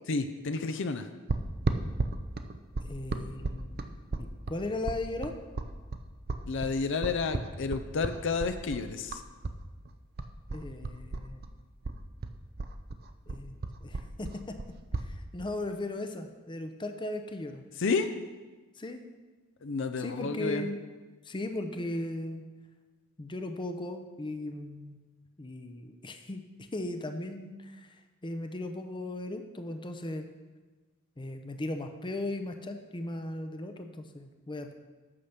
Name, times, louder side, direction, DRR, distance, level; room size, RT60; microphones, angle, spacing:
voice 1, 0.1-1.1 6.4-9.2 17.8-18.1 19.6-20.7, left 4 dB, 60° left, 9 dB, 0.6 m, -30 dB
sound 1, 1.3-9.6 9.9-11.5 11.8-15.1, right 3 dB, 50° right, 0.6 m, -34 dB
voice 2, 2.8-3.9 4.2-5.4 10.5-11.4 13.3-14.3 15.0-17.6 18.8-19.0 20.0-20.8 21.2-22.4 23.2-25.0 25.4-26.4 26.7-30.3 31.2-34.7, left 2 dB, 25° left, 6 dB, 0.6 m, -37 dB
8.7 x 6.7 x 5.8 m, 1.3 s
head